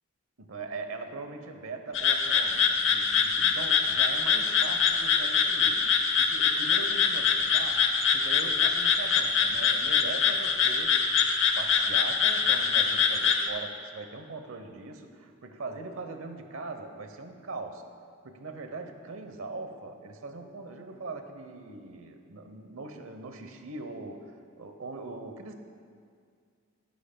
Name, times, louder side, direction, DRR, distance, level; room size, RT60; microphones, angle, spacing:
voice 1, 0.4-11.0 11.6-17.8 18.2-25.5, right 3 dB, 85° right, 6 dB, 0.9 m, -41 dB
sound 1, 1.9-13.5, left 6 dB, 65° left, 0.7 m, -24 dB
16.0 x 10.5 x 2.3 m, 2.2 s
head